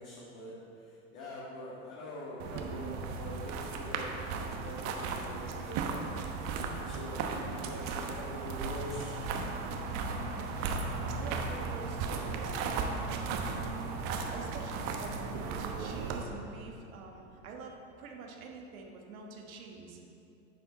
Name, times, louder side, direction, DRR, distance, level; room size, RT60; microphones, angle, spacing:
voice 1, 0.0-6.1 6.7-9.3, left 1 dB, 45° left, -6 dB, 1.8 m, -44 dB
sound 1, 2.4-16.2, right 4 dB, 55° right, 1.0 m, -36 dB
voice 2, 10.1-10.6 10.9-13.6 14.1-20.0, right 4 dB, 80° right, 1 dB, 1.4 m, -47 dB
10.0 x 5.7 x 3.9 m, 2.7 s
hypercardioid pair, 105°, 41 cm